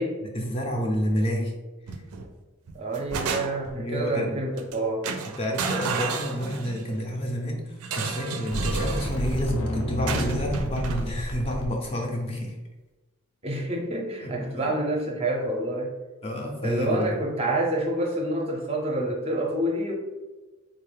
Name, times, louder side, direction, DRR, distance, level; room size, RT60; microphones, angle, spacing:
voice 1, 0.3-1.5 3.7-4.4 5.4-12.6 14.2-14.7 16.2-17.1, equal, 25° left, 0 dB, 0.4 m, -29 dB
sound 1, 1.9-2.3 2.7-3.8 4.6-4.8 5.0-6.9 7.8-9.2 10.1-11.1, right 5 dB, 85° right, 0.4 m, -32 dB
voice 2, 2.7-5.1 13.4-15.9 16.6-19.9, right 1 dB, 25° right, 0 dB, 0.5 m, -28 dB
sound 2, 8.5-11.7, left 1 dB, 70° left, 0.7 m, -30 dB
3.7 x 2.3 x 3.3 m, 1.2 s
head